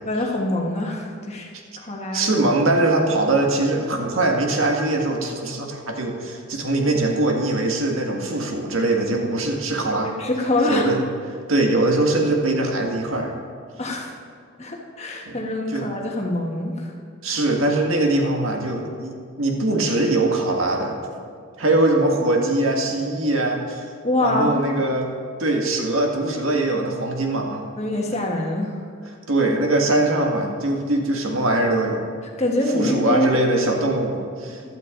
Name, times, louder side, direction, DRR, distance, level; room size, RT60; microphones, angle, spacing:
voice 1, 0.0-1.5 1.8-2.3 10.0-10.9 13.8-14.1 14.6-16.9 17.3-17.4 24.0-24.6 27.8-28.8 32.4-33.3, left 1 dB, 30° left, 0 dB, 1.4 m, -24 dB
voice 2, 2.1-10.1 10.7-11.0 11.5-13.4 15.3-15.4 15.7-15.9 17.2-21.0 21.6-23.8 24.2-25.1 25.4-27.7 29.3-32.1 32.7-34.6, right 2 dB, 80° right, 1 dB, 1.7 m, -22 dB
15.5 x 12.0 x 3.8 m, 2.1 s
head